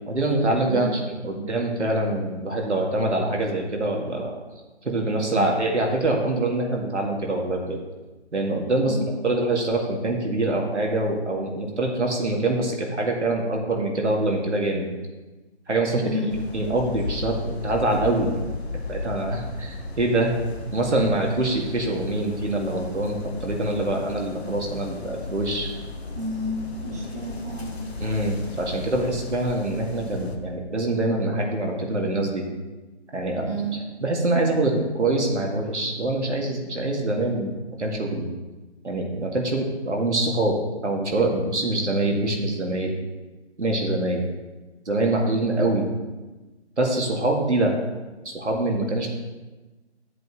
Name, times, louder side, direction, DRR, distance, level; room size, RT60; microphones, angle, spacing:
voice 1, 0.1-4.3 4.8-7.8 8.3-9.0 9.2-14.9 15.7-17.4 17.6-18.4 18.9-25.7 28.0-32.4 33.1-33.6 34.0-37.5 37.8-38.3 38.8-40.6 40.8-42.9 43.6-44.2 44.9-45.9 46.8-47.7 48.2-49.1, right 2 dB, 85° right, 0 dB, 2.3 m, -24 dB
voice 2, 16.0-16.4 26.1-27.9 33.4-33.8, right 1 dB, 15° right, -3 dB, 0.9 m, -31 dB
sound 1, 16.3-30.4, left 3 dB, 65° left, 1.5 m, -35 dB
11.5 x 7.6 x 3.2 m, 1.2 s
figure-of-eight pair, 165°, 34 cm